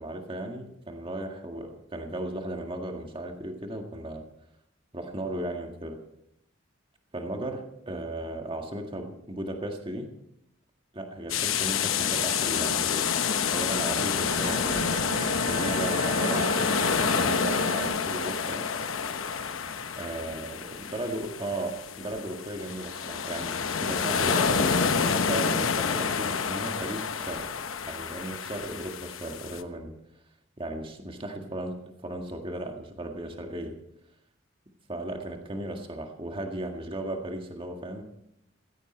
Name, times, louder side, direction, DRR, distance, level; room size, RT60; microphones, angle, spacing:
voice 1, 0.0-4.3 4.9-6.0 7.1-10.1 10.9-13.1 13.5-14.9 15.4-18.7 20.0-27.5 27.8-30.0 30.6-31.8 32.0-33.8 34.9-38.0, right 1 dB, 25° right, 3 dB, 1.8 m, -36 dB
sound 1, 11.3-29.6, left 6 dB, 80° left, 0.9 m, -28 dB
Bowed string instrument, 14.0-18.6, right 4 dB, 80° right, 1.6 m, -37 dB
16.0 x 15.5 x 4.4 m, 0.78 s
head